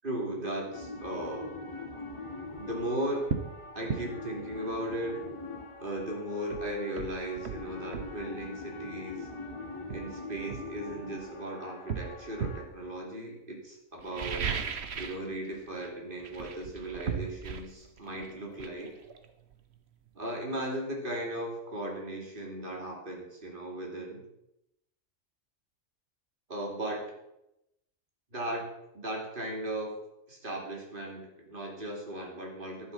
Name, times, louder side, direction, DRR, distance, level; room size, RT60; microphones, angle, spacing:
voice 1, 0.0-1.5 2.6-3.3 3.7-5.2 5.8-9.3 9.9-14.5 15.0-19.0 20.1-24.2 26.5-27.1 28.3-30.0 30.3-32.9, right 1 dB, 40° right, 0 dB, 3.0 m, -37 dB
sound 1, 0.7-12.6, left 2 dB, 25° left, 1.3 m, -43 dB
sound 2, 2.5-2.7 3.3-3.5 3.9-4.1 6.0-6.1 6.5-8.2 9.2-9.4 9.9-11.3 11.9-12.7 14.0-15.3 15.5-15.9 16.2-19.8 20.1-20.2, right 6 dB, 60° right, 1.2 m, -36 dB
11.0 x 9.8 x 5.7 m, 0.86 s
omnidirectional pair, 1.3 m